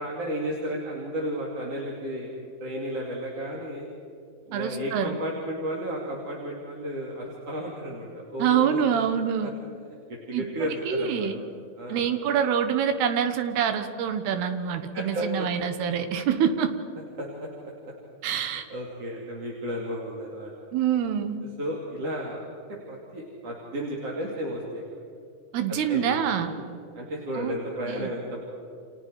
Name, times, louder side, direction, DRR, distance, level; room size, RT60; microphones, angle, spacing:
voice 1, 0.0-2.3 2.6-3.9 4.5-9.0 9.4-9.5 10.1-11.3 11.8-12.0 14.9-15.5 17.2-17.5 18.7-20.5 21.6-22.4 22.7-25.0 25.7-26.6 26.9-28.4, equal, 40° right, -3 dB, 3.2 m, -33 dB
voice 2, 4.5-5.2 8.4-9.5 10.3-10.5 10.9-11.4 11.9-16.8 18.2-18.6 20.7-21.4 25.5-26.5 27.4-27.5 27.9-28.1, right 8 dB, 75° right, 8 dB, 3.2 m, -26 dB
29.5 x 27.5 x 4.7 m, 2.6 s
omnidirectional pair, 4.8 m